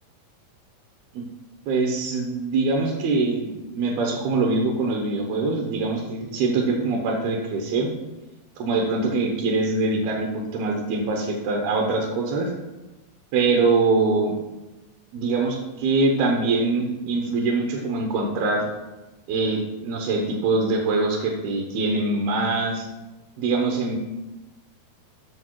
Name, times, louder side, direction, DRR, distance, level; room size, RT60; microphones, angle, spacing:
voice 1, 1.7-7.9 8.6-12.5 13.3-14.4 15.1-18.6 19.3-22.9 23.4-24.0, right 3 dB, 75° right, 1 dB, 2.8 m, -23 dB
8.8 x 6.6 x 4.6 m, 1.1 s
omnidirectional pair, 4.7 m